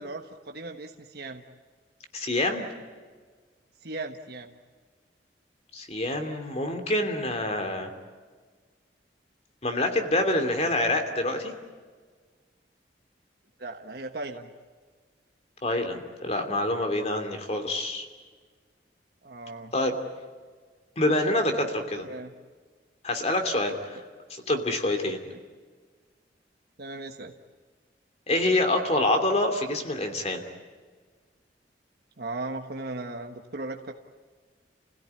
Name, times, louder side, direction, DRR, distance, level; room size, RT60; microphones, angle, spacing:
voice 1, 0.0-1.4 3.8-4.5 13.6-14.5 19.2-19.7 21.9-22.3 25.3-25.4 26.8-27.3 32.2-33.9, right 2 dB, 60° right, 4 dB, 1.4 m, -37 dB
voice 2, 2.1-2.6 5.7-7.9 9.6-11.5 15.6-18.1 19.7-20.0 21.0-22.1 23.0-24.0 24.3-25.2 28.3-30.4, left 1 dB, 35° left, 6 dB, 2.8 m, -26 dB
30.0 x 16.5 x 9.8 m, 1.5 s
head